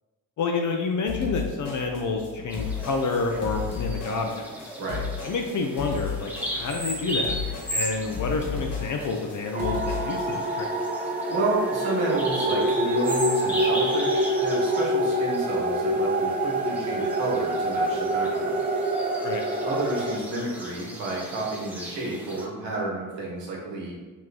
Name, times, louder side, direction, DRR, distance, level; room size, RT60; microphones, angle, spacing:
voice 1, 0.4-4.8 5.2-7.4 7.7-10.9 19.2-19.4, left 4 dB, 40° left, 2 dB, 0.5 m, -29 dB
sound 1, 1.1-10.2, left 6 dB, 60° left, 1.4 m, -34 dB
Bird vocalization bird call bird song, 2.5-22.5, equal, 5° right, 1.1 m, -37 dB
sound 2, 9.5-20.2, right 1 dB, 20° right, 0.5 m, -26 dB
voice 2, 11.3-18.6 19.6-23.9, right 2 dB, 70° right, -3 dB, 1.2 m, -31 dB
3.2 x 3.1 x 3.9 m, 1.3 s
hypercardioid pair, 40°, 45 cm